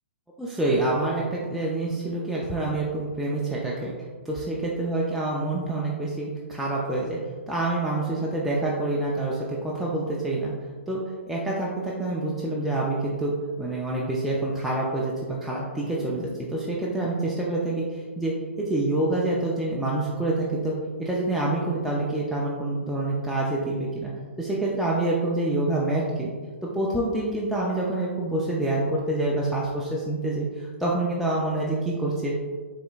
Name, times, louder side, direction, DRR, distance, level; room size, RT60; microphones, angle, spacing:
voice 1, 0.4-3.9 4.3-7.2 7.5-10.5 10.9-11.0 11.3-13.3 13.6-20.7 21.0-24.1 24.4-26.3 26.7-32.4, right 2 dB, ahead, -5 dB, 0.4 m, -27 dB
4.9 x 3.3 x 2.3 m, 1.5 s
hypercardioid pair, 145°, 7 cm